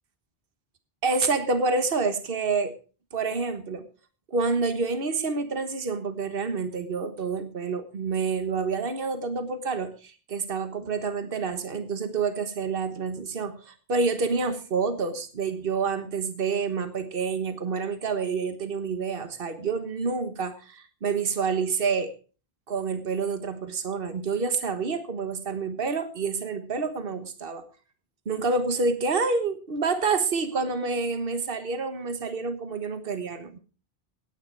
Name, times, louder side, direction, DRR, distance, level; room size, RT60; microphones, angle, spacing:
voice 1, 1.0-2.7 3.1-3.9 4.3-22.1 22.7-27.6 28.2-33.6, right 4 dB, 65° right, 9 dB, 1.5 m, -28 dB
16.5 x 9.7 x 4.7 m, 0.37 s
omnidirectional pair, 1.0 m